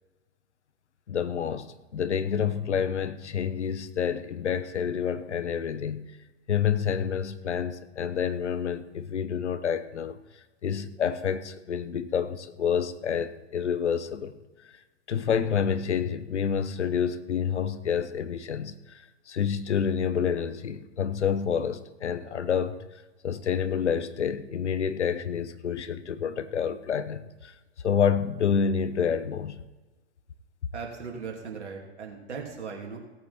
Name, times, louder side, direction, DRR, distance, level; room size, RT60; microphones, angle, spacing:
voice 1, 1.1-6.0 6.5-10.2 10.6-14.4 14.6-14.7 15.1-22.8 23.2-27.5 27.8-29.6, left 7 dB, 85° left, 1.0 m, -28 dB
voice 2, 30.7-33.0, right 5 dB, 85° right, 3.1 m, -38 dB
18.0 x 8.5 x 4.3 m
hypercardioid pair, 105°, 34 cm